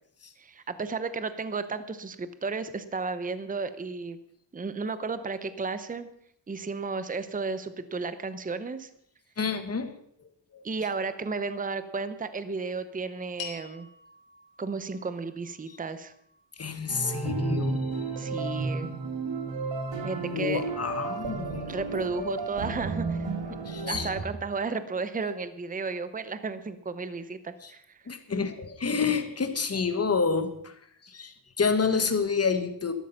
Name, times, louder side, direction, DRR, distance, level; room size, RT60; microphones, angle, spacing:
voice 1, 0.4-4.2 4.5-6.1 6.5-8.9 10.6-13.9 14.6-16.1 18.2-18.9 20.0-20.6 21.7-23.3 23.9-28.0, right 4 dB, 20° right, 12 dB, 0.8 m, -33 dB
voice 2, 9.4-9.9 10.5-10.6 16.6-18.0 20.2-21.6 23.7-24.1 27.6-27.7 28.1-30.7 31.0-32.9, left 5 dB, 35° left, 9 dB, 1.5 m, -28 dB
sound 1, 13.4-17.9, left 8 dB, 85° left, 3.2 m, -48 dB
sound 2, 16.9-24.2, right 3 dB, 90° right, 2.6 m, -32 dB
13.0 x 13.0 x 5.7 m, 0.69 s
wide cardioid pair, 145°, 43 cm